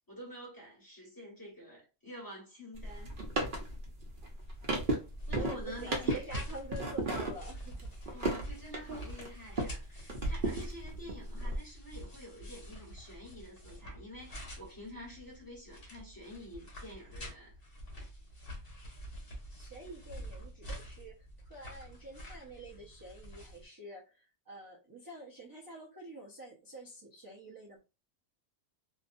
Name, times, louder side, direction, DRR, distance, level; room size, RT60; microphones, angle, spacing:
voice 1, 0.1-3.1 5.3-6.3 8.1-17.6, equal, 20° left, 1.3 m, -48 dB
sound 1, 2.7-9.8 10.1-11.6, right 2 dB, 55° right, 0.8 m, -35 dB
sound 2, 4.4-23.7, equal, 55° left, 1.3 m, -46 dB
voice 2, 5.3-7.9 19.6-27.8, right 2 dB, 35° right, 0.4 m, -47 dB
2.7 x 2.2 x 2.5 m
omnidirectional pair, 1.1 m